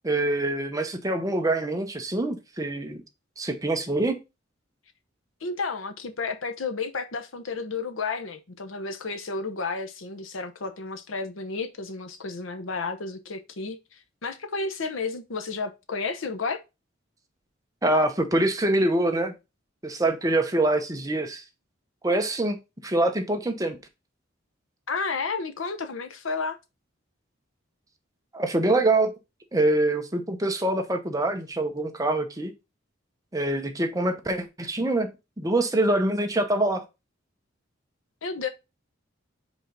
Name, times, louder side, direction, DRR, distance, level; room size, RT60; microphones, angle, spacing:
voice 1, 0.0-3.0 3.4-4.2 17.8-19.3 19.8-21.4 22.0-22.6 22.8-23.8 28.3-29.1 29.5-32.5 33.3-35.1 35.4-36.8, right 2 dB, 15° right, 0.8 m, -25 dB
voice 2, 5.4-16.6 24.9-26.6 38.2-38.5, left 4 dB, 85° left, 0.9 m, -32 dB
5.0 x 3.8 x 5.3 m
head